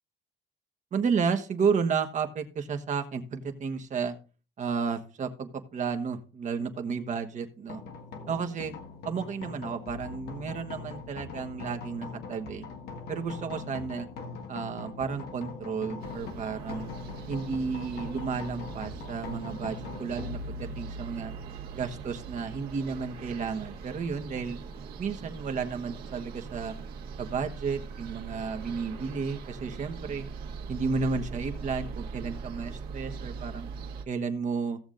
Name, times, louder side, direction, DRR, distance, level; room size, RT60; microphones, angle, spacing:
voice 1, 0.9-4.2 4.6-7.8 8.3-8.7 9.0-12.6 13.1-14.1 14.5-16.9 17.3-21.3 21.7-24.6 25.0-26.7 27.2-30.3 30.7-33.7 34.1-34.8, right 5 dB, 45° right, 5 dB, 1.3 m, -32 dB
sound 1, 7.7-24.9, left 4 dB, 75° left, 1.7 m, -42 dB
sound 2, 16.0-34.1, right 5 dB, 65° right, 1.7 m, -41 dB
16.5 x 7.1 x 2.6 m, 0.36 s
cardioid pair, 110°, 17 cm